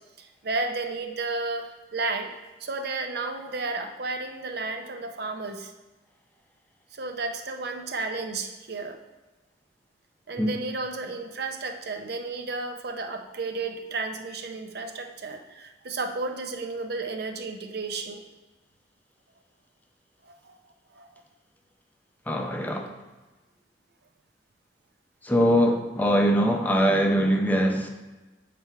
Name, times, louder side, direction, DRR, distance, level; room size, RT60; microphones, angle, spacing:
voice 1, 0.2-2.3 2.6-5.7 6.9-9.0 10.3-18.2 20.2-20.6 20.9-21.2, right 3 dB, 55° right, 5 dB, 0.7 m, -33 dB
voice 2, 22.3-22.9 25.2-27.9, equal, 10° left, 3 dB, 0.6 m, -22 dB
8.3 x 3.4 x 4.6 m, 1.1 s
head